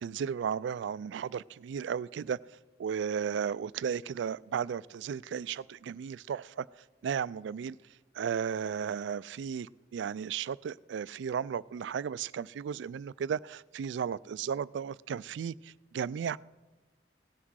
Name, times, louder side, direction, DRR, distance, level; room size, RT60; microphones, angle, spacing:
voice 1, 0.0-2.4 2.8-6.7 7.0-7.8 8.1-16.4, right 7 dB, 90° right, 0.3 m, -34 dB
17.0 x 5.9 x 6.3 m
head